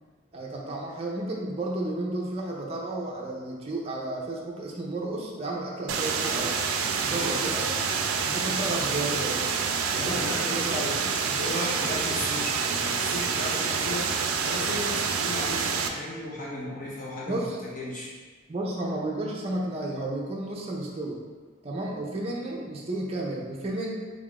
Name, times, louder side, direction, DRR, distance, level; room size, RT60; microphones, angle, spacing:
voice 1, 0.3-6.6 7.0-7.7 8.3-9.4 10.0-11.3 17.3-17.6 18.5-21.2 21.6-23.9, right 2 dB, 30° right, -3 dB, 0.5 m, -32 dB
sound 1, 5.9-15.9, right 5 dB, 90° right, 0.4 m, -27 dB
voice 2, 7.1-7.4 9.9-10.9 11.4-17.4 17.8-18.1, left 1 dB, 40° left, -4 dB, 0.5 m, -35 dB
3.6 x 2.4 x 3.6 m, 1.4 s
head